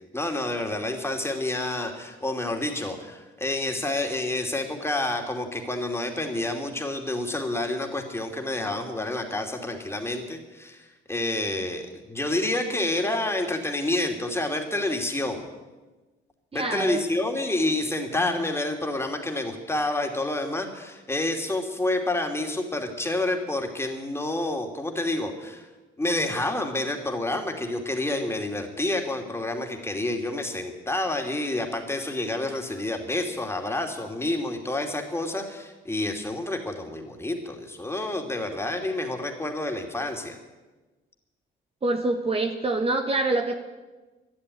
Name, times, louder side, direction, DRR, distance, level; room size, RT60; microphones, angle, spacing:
voice 1, 0.1-10.8 11.1-15.4 16.5-25.6 26.0-40.3, left 2 dB, 10° left, 3 dB, 2.7 m, -28 dB
voice 2, 16.5-17.0 41.8-43.6, right 2 dB, 30° right, 5 dB, 1.3 m, -25 dB
12.5 x 11.5 x 9.7 m, 1.2 s
cardioid pair, 90°, 20 cm